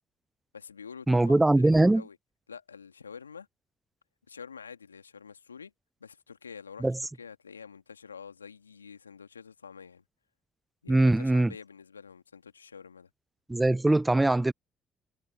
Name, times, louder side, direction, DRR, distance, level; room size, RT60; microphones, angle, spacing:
voice 1, 0.5-2.2 2.5-3.5 4.3-5.7 6.0-6.9 7.2-10.0 10.8-13.1, left 6 dB, 90° left, 2.2 m, -47 dB
voice 2, 1.1-2.0 6.8-7.0 10.9-11.5 13.5-14.5, right 2 dB, 15° right, 0.4 m, -22 dB
figure-of-eight pair, 45°, 0 cm